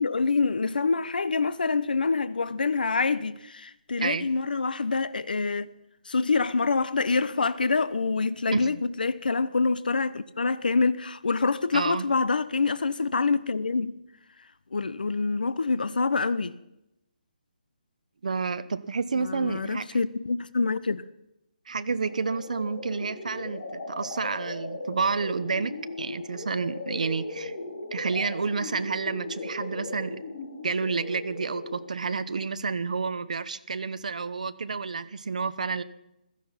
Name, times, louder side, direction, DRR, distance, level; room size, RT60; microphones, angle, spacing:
voice 1, 0.0-5.7 6.1-13.9 14.7-16.5 19.1-21.0, left 4 dB, 80° left, 0.9 m, -26 dB
voice 2, 11.7-12.1 18.2-19.9 21.7-25.7 26.0-27.5 27.9-30.2 30.6-35.8, right 4 dB, 55° right, 0.9 m, -30 dB
sound 1, 22.0-32.0, left 2 dB, 40° left, 3.0 m, -38 dB
16.0 x 13.5 x 5.7 m
hypercardioid pair, 175°, 5 cm